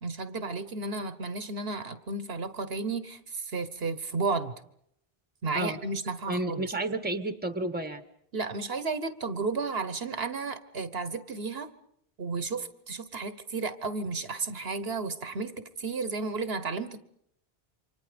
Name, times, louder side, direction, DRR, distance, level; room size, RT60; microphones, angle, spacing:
voice 1, 0.0-4.5 5.4-6.7 8.3-11.7 12.2-17.0, right 4 dB, 70° right, 12 dB, 1.4 m, -33 dB
voice 2, 6.3-8.0, right 2 dB, 10° right, 10 dB, 1.4 m, -31 dB
29.0 x 25.5 x 5.2 m, 0.71 s
omnidirectional pair, 1.1 m